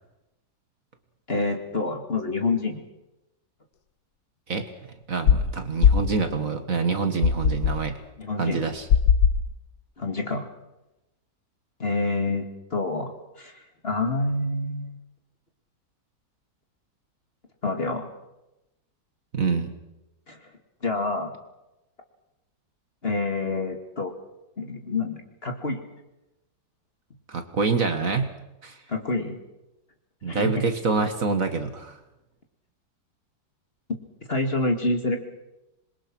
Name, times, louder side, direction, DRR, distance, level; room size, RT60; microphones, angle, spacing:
voice 1, 1.3-2.8 8.2-8.6 10.0-10.5 11.8-12.5 12.7-13.1 13.4-13.5 13.8-15.0 17.6-18.1 20.3-20.4 20.8-21.3 23.0-24.1 24.6-25.8 28.9-29.4 30.3-30.6 34.3-35.2, left 2 dB, 35° left, 4 dB, 2.3 m, -27 dB
voice 2, 5.1-8.0 8.4-8.9 19.3-19.7 27.3-28.3 28.6-28.8 30.2-32.0, right 4 dB, 50° right, 7 dB, 1.9 m, -26 dB
sound 1, 5.3-5.5 5.8-6.1 7.2-7.8 8.9-9.5, left 7 dB, 65° left, 1.4 m, -19 dB
26.5 x 22.0 x 6.2 m, 0.96 s
omnidirectional pair, 2.0 m